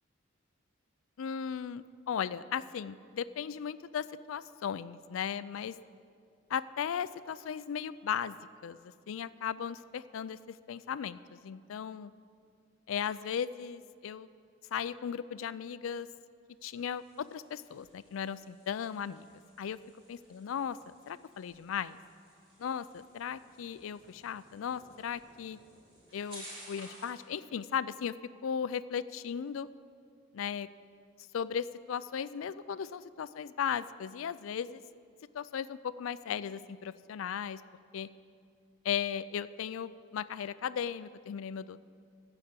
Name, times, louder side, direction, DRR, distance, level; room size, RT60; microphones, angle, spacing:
voice 1, 1.2-5.8 6.5-8.4 8.6-12.1 12.9-14.3 14.7-16.1 16.6-19.3 19.6-19.8 20.1-22.0 22.6-25.6 26.1-28.1 28.4-29.7 30.3-30.7 31.3-34.8 35.3-37.6 37.9-38.1 38.8-41.8, left 8 dB, 80° left, 16 dB, 0.4 m, -36 dB
sound 1, 16.5-27.2, equal, 25° right, 3.4 m, -55 dB
14.5 x 4.9 x 8.1 m, 2.4 s
head